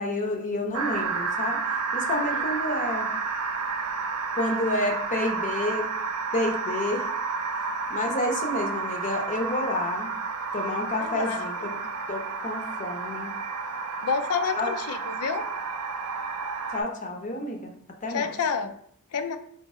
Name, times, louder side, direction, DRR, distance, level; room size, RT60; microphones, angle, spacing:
voice 1, 0.0-1.6 1.9-3.1 4.3-5.9 6.3-7.1 7.9-10.1 10.5-11.7 12.1-13.3 14.5-14.7 16.7-17.7 18.0-18.3, left 1 dB, 35° left, 3 dB, 0.7 m, -29 dB
sound 1, 0.7-16.8, right 4 dB, 90° right, 0.5 m, -31 dB
voice 2, 2.1-2.5 11.0-11.9 14.0-15.5 18.1-18.8 19.1-19.4, left 5 dB, 85° left, 9 dB, 0.5 m, -29 dB
4.1 x 2.8 x 3.6 m, 0.66 s
head